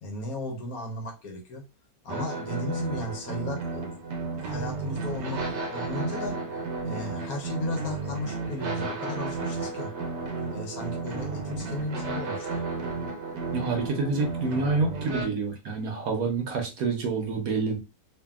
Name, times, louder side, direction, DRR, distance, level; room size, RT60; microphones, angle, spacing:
voice 1, 0.0-1.6 2.0-3.8 4.4-6.3 6.8-9.9 10.5-12.6, left 1 dB, 65° left, 1 dB, 1.1 m, -35 dB
sound 1, 2.1-15.3, right 3 dB, 85° right, 1.2 m, -33 dB
voice 2, 13.5-17.8, right 4 dB, 65° right, 3 dB, 1.0 m, -28 dB
2.7 x 2.6 x 2.3 m, 0.28 s
omnidirectional pair, 1.8 m